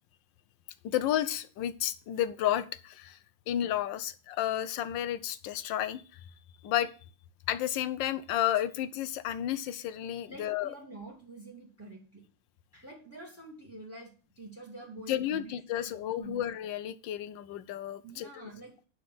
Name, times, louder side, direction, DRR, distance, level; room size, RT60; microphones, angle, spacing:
voice 1, 0.8-3.2 3.5-6.2 6.6-6.9 7.5-10.7 15.1-18.5, left 12 dB, 70° left, 13 dB, 1.3 m, -32 dB
voice 2, 10.3-12.2 12.7-15.9 16.2-16.4 18.0-18.8, right 2 dB, 5° right, 1 dB, 2.4 m, -47 dB
11.0 x 4.2 x 7.7 m, 0.37 s
omnidirectional pair, 2.3 m